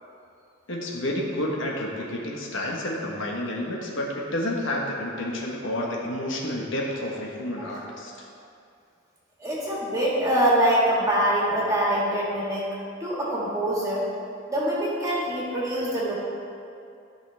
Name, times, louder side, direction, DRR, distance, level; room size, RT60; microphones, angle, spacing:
voice 1, 0.7-8.1, left 1 dB, 70° left, -2 dB, 1.4 m, -30 dB
voice 2, 9.4-12.7 13.0-14.1 14.5-16.1, right 1 dB, 15° right, -6 dB, 1.9 m, -24 dB
13.5 x 5.8 x 3.4 m, 2.5 s
head